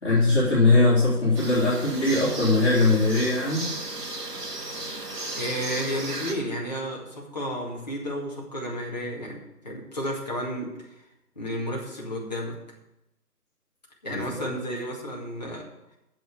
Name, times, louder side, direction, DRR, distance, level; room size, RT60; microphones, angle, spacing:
voice 1, 0.0-3.7 14.1-14.6, left 2 dB, 45° left, -9 dB, 3.7 m, -21 dB
sound 1, 1.3-6.3, right 2 dB, 80° right, 2.4 m, -35 dB
voice 2, 5.4-11.0 11.4-12.6 14.0-15.7, equal, 25° left, -3 dB, 2.0 m, -32 dB
8.0 x 7.5 x 8.4 m, 0.90 s
figure-of-eight pair, 175°, 47 cm